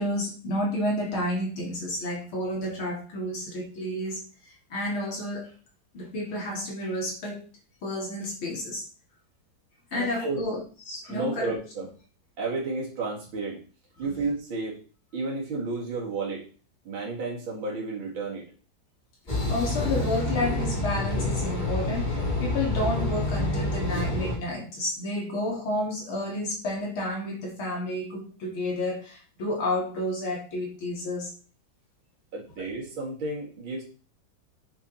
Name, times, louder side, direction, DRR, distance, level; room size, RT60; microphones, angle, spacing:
voice 1, 0.0-4.2 4.7-5.5 5.9-7.4 7.8-8.8 9.9-11.5 14.0-14.2 19.5-31.3, left 1 dB, 85° left, -1 dB, 3.9 m, -31 dB
voice 2, 9.9-10.4 11.1-11.9 12.4-13.6 14.0-14.8 15.1-16.4 16.8-18.4 32.3-33.8, right 3 dB, 75° right, -3 dB, 3.2 m, -32 dB
sound 1, 19.3-24.4, left 2 dB, 20° left, 2.9 m, -28 dB
8.8 x 7.3 x 4.4 m, 0.38 s
omnidirectional pair, 2.2 m